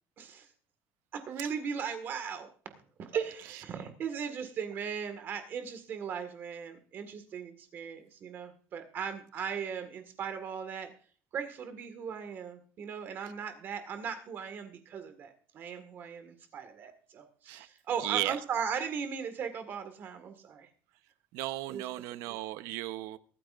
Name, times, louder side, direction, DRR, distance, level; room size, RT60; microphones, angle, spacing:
voice 1, 0.2-0.5 1.1-2.5 3.0-10.9 11.3-20.7 21.7-21.8, right 7 dB, 40° right, 8 dB, 1.8 m, -38 dB
voice 2, 18.0-18.4 21.3-23.2, right 16 dB, 75° right, 12 dB, 0.9 m, -35 dB
23.5 x 9.7 x 2.5 m, 0.43 s
cardioid pair, 165°, 6 cm